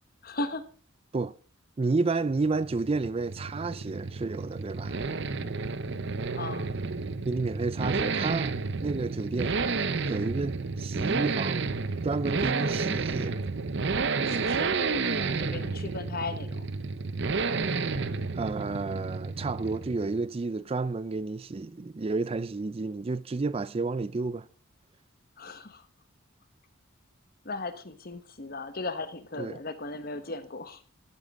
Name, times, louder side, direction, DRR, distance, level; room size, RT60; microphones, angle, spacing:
voice 1, 0.2-0.7 6.3-6.7 14.3-16.7 25.4-25.8 27.4-30.8, left 3 dB, 45° left, 1.3 m, -37 dB
voice 2, 1.8-5.0 7.3-9.6 10.1-11.7 12.0-13.4 18.3-24.5 29.4-29.6, right 3 dB, 30° right, 0.4 m, -31 dB
sound 1, 2.3-20.3, right 4 dB, 60° right, 0.8 m, -31 dB
13.0 x 9.6 x 3.6 m
head